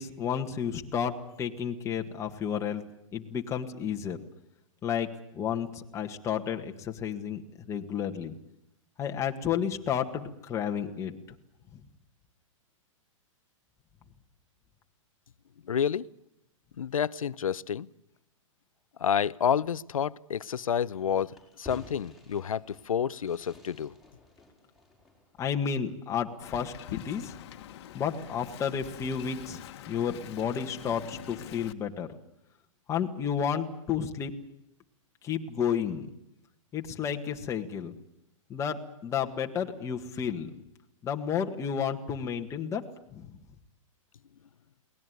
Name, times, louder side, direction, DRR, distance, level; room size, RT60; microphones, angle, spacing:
voice 1, 0.0-2.8 3.1-4.2 4.8-7.4 7.7-8.4 9.0-11.2 25.4-26.7 27.0-27.3 27.9-29.6 29.9-32.2 32.9-34.3 35.2-36.1 36.7-37.9 38.5-40.5 41.0-43.3, left 7 dB, 15° left, 1.8 m, -31 dB
voice 2, 15.7-16.1 16.8-17.9 19.0-23.9, left 8 dB, 90° left, 0.8 m, -29 dB
Fireworks, 20.7-25.9, left 2 dB, ahead, 5.1 m, -53 dB
Wind, 26.4-31.7, left 12 dB, 50° left, 1.6 m, -44 dB
23.0 x 18.5 x 9.5 m
hypercardioid pair, 145°, 17 cm